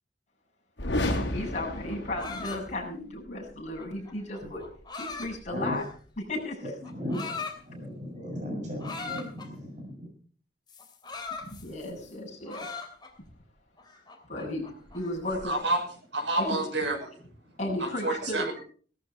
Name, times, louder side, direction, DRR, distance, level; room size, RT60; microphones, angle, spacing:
sound 1, 0.8-2.8, left 1 dB, 80° left, 3.2 m, -31 dB
voice 1, 1.3-4.6 5.0-5.8 6.3-6.6 11.4-12.7 14.3-14.7 14.9-15.6 16.4-16.6 17.6-18.5, left 1 dB, 40° left, -2 dB, 7.5 m, -34 dB
sound 2, 1.7-6.1 6.8-7.6 8.8-9.5 10.7-12.1 12.5-13.3 13.8-15.4, left 4 dB, 25° left, 3.0 m, -40 dB
voice 2, 6.6-10.1, left 1 dB, 40° right, 2 dB, 6.4 m, -36 dB
voice 3, 15.4-15.8 16.1-17.1 17.8-18.6, right 2 dB, 85° right, 1 dB, 6.5 m, -29 dB
18.0 x 13.5 x 4.4 m, 0.43 s
head